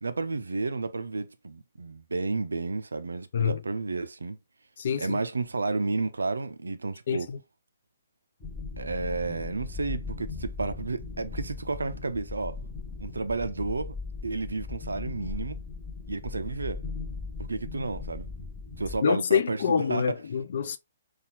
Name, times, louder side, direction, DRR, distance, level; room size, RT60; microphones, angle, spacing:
voice 1, 0.0-4.4 5.0-7.3 8.8-12.6 13.0-14.0 14.2-15.6 16.1-16.8 17.5-18.3 18.8-20.0, right 3 dB, 75° right, 0.4 m, -31 dB
voice 2, 4.8-5.2 7.1-7.4 19.0-20.8, left 7 dB, 55° left, 0.4 m, -26 dB
sound 1, 8.4-19.0, left 4 dB, 15° left, 1.2 m, -38 dB
4.1 x 2.3 x 2.8 m
figure-of-eight pair, 125°, 0 cm